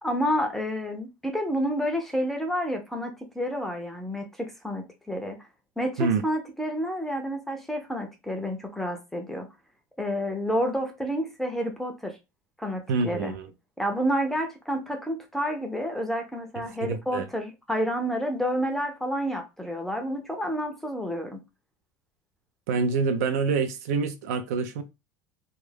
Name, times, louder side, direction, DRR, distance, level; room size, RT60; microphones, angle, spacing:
voice 1, 0.0-5.4 5.8-9.5 10.0-12.2 12.6-13.3 13.8-21.4, equal, 5° left, 0.4 m, -29 dB
voice 2, 12.9-13.5 16.6-17.3 22.7-24.8, right 4 dB, 85° right, 0.5 m, -26 dB
2.3 x 2.1 x 3.2 m
supercardioid pair, 140°, 8 cm